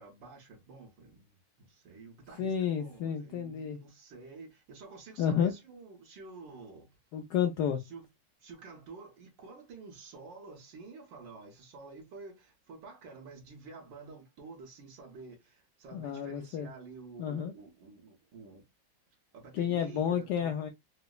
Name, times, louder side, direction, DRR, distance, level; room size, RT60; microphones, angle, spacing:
voice 1, 0.0-6.9 7.8-8.1 8.4-18.7 19.3-20.5, right 4 dB, 65° right, 1.6 m, -50 dB
voice 2, 2.4-3.8 5.2-5.5 7.1-7.8 15.9-16.7 17.2-17.5 19.5-20.7, left 8 dB, 75° left, 0.9 m, -30 dB
4.9 x 2.0 x 2.2 m
omnidirectional pair, 2.2 m